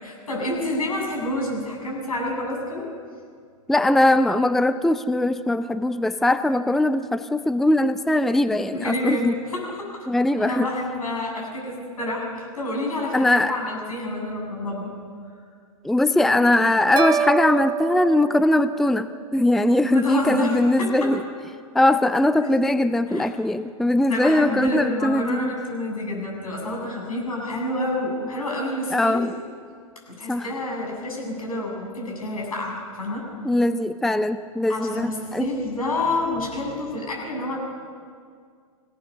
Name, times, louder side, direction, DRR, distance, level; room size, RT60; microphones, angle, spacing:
voice 1, 0.0-2.9 8.7-10.1 10.4-14.9 19.9-21.1 22.4-22.5 23.1-23.3 24.1-29.2 30.1-33.3 34.7-37.6, left 1 dB, 80° left, -1 dB, 7.7 m, -28 dB
voice 2, 3.7-9.3 10.1-10.7 13.1-13.5 15.8-21.2 21.7-25.5 28.9-29.4 30.3-30.5 33.4-35.5, left 1 dB, ahead, 12 dB, 0.5 m, -21 dB
sound 1, 17.0-19.2, right 8 dB, 25° right, 0.9 m, -27 dB
23.0 x 17.5 x 6.8 m, 2.1 s
figure-of-eight pair, 105°, 18 cm